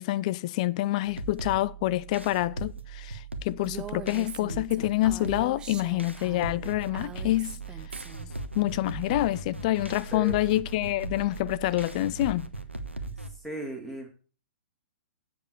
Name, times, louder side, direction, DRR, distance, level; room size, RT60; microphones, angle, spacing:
voice 1, 0.0-7.6 8.5-12.5, left 16 dB, 35° left, 0.4 m, -27 dB
sound 1, 1.0-13.4, right 3 dB, 90° right, 1.1 m, -39 dB
Female speech woman speaking, 3.7-8.3, right 7 dB, 15° right, 0.7 m, -42 dB
voice 2, 13.4-14.1, equal, 5° left, 2.6 m, -36 dB
7.9 x 7.1 x 6.6 m
figure-of-eight pair, 110°, 6 cm